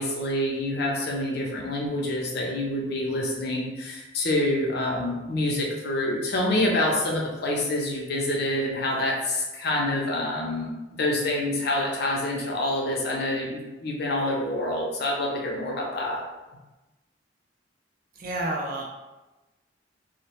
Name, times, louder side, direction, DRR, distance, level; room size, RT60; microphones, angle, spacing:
voice 1, 0.0-16.2, left 1 dB, 55° left, -1 dB, 0.5 m, -27 dB
voice 2, 18.1-18.9, right 1 dB, 45° right, -1 dB, 0.4 m, -30 dB
2.1 x 2.0 x 2.8 m, 1.1 s
head